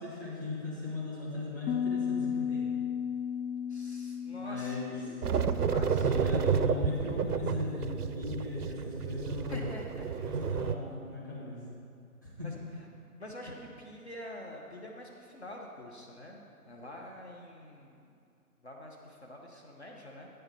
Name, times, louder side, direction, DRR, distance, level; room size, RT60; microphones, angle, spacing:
voice 1, 0.0-2.7 4.3-5.2 5.8-9.7 10.2-11.6 12.2-12.5, left 3 dB, 15° left, -9 dB, 1.0 m, -38 dB
Piano, 1.7-7.3, left 7 dB, 90° left, 0.6 m, -35 dB
voice 2, 3.7-5.2 5.7-6.1 9.5-10.1 12.4-12.6 13.2-16.4 16.7-18.1 18.6-20.3, left 1 dB, 45° left, -1 dB, 0.8 m, -46 dB
sound 1, 5.2-10.8, right 6 dB, 85° right, 0.6 m, -30 dB
9.1 x 5.7 x 5.4 m, 2.5 s
figure-of-eight pair, 165°, 45 cm